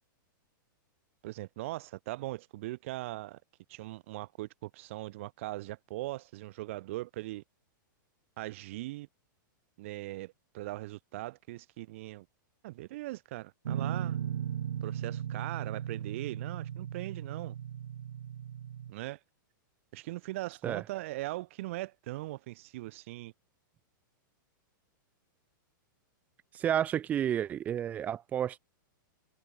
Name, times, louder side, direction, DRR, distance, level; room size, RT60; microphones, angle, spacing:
voice 1, 1.2-3.4 3.7-7.4 8.4-9.1 9.8-12.3 12.6-14.2 14.8-17.6 18.9-19.2 19.9-23.3, right 18 dB, 40° right, 4.5 m, -40 dB
Guitar, 13.7-18.9, right 10 dB, 85° right, 3.0 m, -37 dB
voice 2, 26.5-28.6, right 10 dB, 15° right, 2.2 m, -31 dB
supercardioid pair, 180°, 11 cm